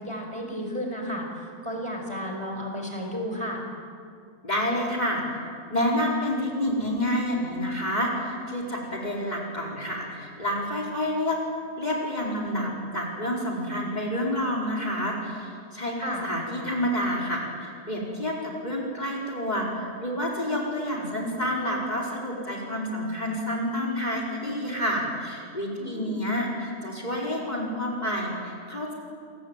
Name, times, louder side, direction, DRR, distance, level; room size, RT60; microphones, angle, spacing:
voice 1, 0.0-3.6 16.0-16.2 25.8-26.2, equal, 20° right, 1 dB, 4.9 m, -33 dB
voice 2, 4.4-5.2 5.7-11.4 11.8-28.9, equal, 25° left, -2 dB, 4.9 m, -29 dB
29.5 x 22.0 x 9.0 m, 2.3 s
omnidirectional pair, 1.6 m